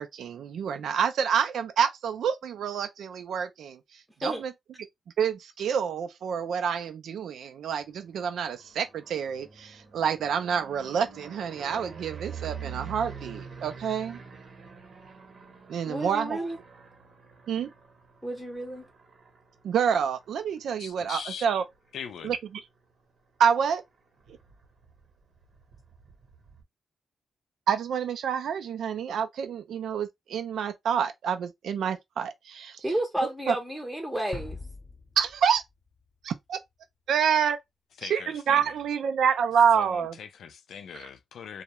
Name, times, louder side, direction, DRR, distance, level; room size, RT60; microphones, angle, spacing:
voice 1, 0.0-4.5 5.2-14.2 15.7-16.4 17.5-17.7 19.6-21.7 22.2-22.4 23.4-23.8 27.7-32.8 33.5-33.6 35.2-35.6 36.2-36.6 37.1-37.6 38.0-40.2 41.0-41.1, right 7 dB, 85° right, 0.3 m, -28 dB
sound 1, 8.0-22.0 22.4-22.9 23.2-23.3 23.5-26.6, right 6 dB, 65° right, 0.8 m, -46 dB
voice 2, 15.9-16.6 18.2-18.8 32.8-34.6, right 1 dB, 5° right, 0.6 m, -31 dB
voice 3, 20.8-21.5 21.9-22.3 38.0-38.6 39.7-41.6, left 7 dB, 85° left, 0.3 m, -41 dB
sound 2, 34.3-36.2, left 3 dB, 35° left, 0.7 m, -43 dB
2.3 x 2.0 x 2.8 m
cardioid pair, 90°, 0 cm